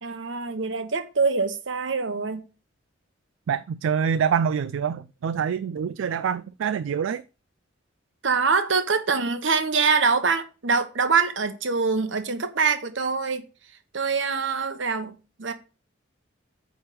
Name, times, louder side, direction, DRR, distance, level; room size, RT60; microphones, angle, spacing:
voice 1, 0.0-2.4 8.2-13.4 13.9-15.5, right 5 dB, 75° right, 1.1 m, -24 dB
voice 2, 3.5-7.2, right 7 dB, 90° right, 0.3 m, -25 dB
8.8 x 3.5 x 6.8 m
head